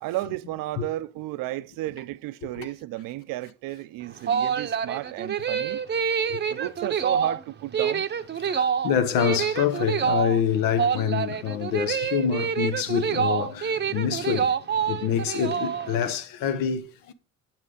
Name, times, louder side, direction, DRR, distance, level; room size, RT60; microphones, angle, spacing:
voice 1, 0.0-5.8 6.5-8.1, right 16 dB, 80° right, 0.5 m, -33 dB
sound 1, 4.0-16.1, right 7 dB, 35° right, 0.7 m, -27 dB
voice 2, 8.4-14.6 14.9-17.1, left 8 dB, 85° left, 0.9 m, -26 dB
7.2 x 5.9 x 4.9 m
cardioid pair, 90°, 33 cm